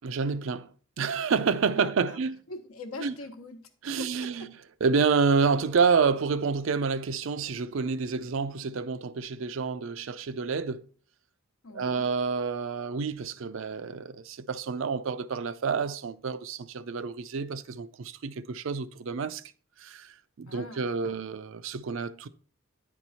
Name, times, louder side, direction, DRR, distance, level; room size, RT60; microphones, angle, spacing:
voice 1, 0.0-0.7 1.0-2.4 3.0-3.1 3.8-4.5 4.8-10.8 11.7-19.4 19.8-22.3, right 5 dB, 65° right, 0.4 m, -28 dB
voice 2, 1.7-3.6 4.0-4.5 11.6-12.1 20.5-21.2, left 2 dB, 80° left, 1.0 m, -43 dB
9.4 x 4.6 x 4.1 m
head